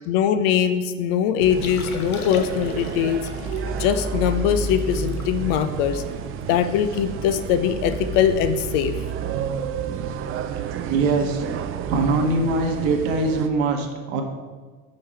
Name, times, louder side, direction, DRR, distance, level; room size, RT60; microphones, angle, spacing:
voice 1, 0.1-3.2 3.8-6.0 6.5-9.0, left 8 dB, 55° left, 10 dB, 0.6 m, -22 dB
sound 1, 1.4-13.5, right 5 dB, 35° right, 0.4 m, -30 dB
Liquid, 1.6-6.9 7.3-7.4 7.7-8.0 8.3-8.5 9.1-9.3 10.8-10.9, left 5 dB, 90° left, 0.7 m, -39 dB
voice 2, 10.8-11.4 11.9-14.2, right 3 dB, 55° right, 4 dB, 1.1 m, -22 dB
5.7 x 5.3 x 4.4 m, 1.4 s
hypercardioid pair, 75°, 42 cm